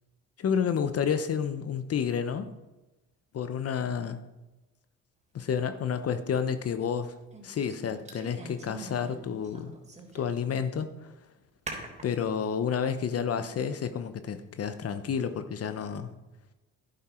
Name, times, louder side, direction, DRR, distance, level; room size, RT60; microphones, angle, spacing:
voice 1, 0.4-2.5 3.3-4.2 5.3-7.1 7.4-9.7 10.1-11.1 12.0-16.1, left 7 dB, 45° left, 11 dB, 0.9 m, -30 dB
sound 1, 5.6-5.7 7.3-9.1 9.4-10.4 10.8-10.9 11.7-12.3, right 2 dB, 20° right, 3.3 m, -43 dB
11.0 x 10.5 x 4.4 m, 1.1 s
cardioid pair, 85°, 33 cm